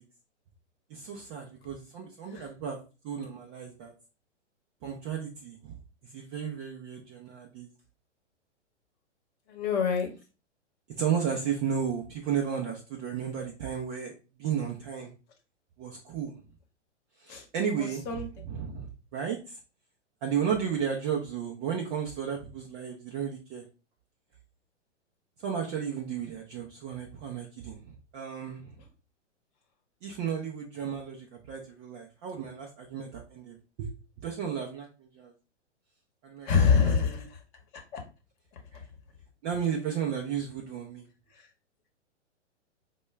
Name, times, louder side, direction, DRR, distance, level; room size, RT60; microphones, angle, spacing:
voice 1, 0.9-2.8 3.0-3.9 4.8-5.7 6.1-7.7 11.0-14.1 14.4-15.1 15.8-16.3 17.2-18.9 19.1-19.4 20.2-23.6 25.4-27.8 28.1-28.7 30.0-33.9 34.2-34.9 35.2-35.3 36.2-37.2 39.4-41.0, right 8 dB, 20° right, -1 dB, 0.4 m, -33 dB
voice 2, 9.5-10.1 17.3-17.4 17.8-18.3 36.4-37.4 37.9-38.0, left 6 dB, 30° left, 3 dB, 1.0 m, -26 dB
4.4 x 2.2 x 3.1 m, 0.32 s
hypercardioid pair, 115°, 36 cm